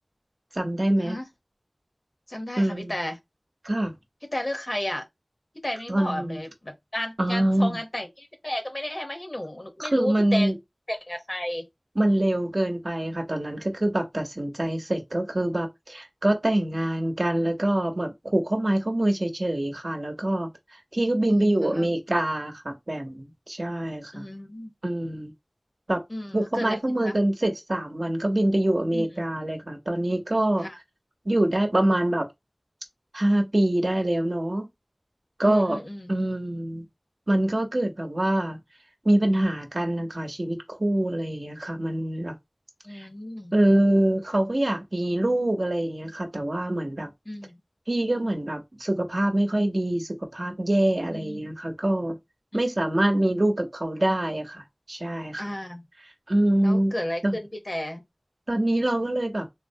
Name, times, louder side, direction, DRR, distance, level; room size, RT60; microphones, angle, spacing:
voice 1, 0.5-1.2 2.6-2.9 3.6-3.9 5.9-6.4 7.2-7.8 9.8-10.5 12.0-20.5 20.9-24.2 24.8-25.3 25.9-26.0 26.3-30.7 31.2-32.3 33.1-34.7 35.4-35.8 36.1-36.9 37.3-38.6 39.0-42.3 42.9-43.1 43.5-47.1 47.9-52.2 52.5-54.6 54.9-55.4 56.3-56.9 57.2-57.4 58.5-59.5, right 1 dB, 65° right, 0.8 m, -25 dB
voice 2, 2.3-3.2 4.3-5.1 5.6-10.5 10.9-11.7 21.2-21.9 24.1-24.7 26.1-27.2 28.9-29.2 30.6-30.8 35.4-36.2 42.8-43.5 47.3-47.6 51.1-51.5 52.5-52.6 55.4-55.9 56.6-58.0, left 1 dB, 50° left, 0.9 m, -33 dB
3.7 x 2.1 x 2.7 m
wide cardioid pair, 40°, 0 cm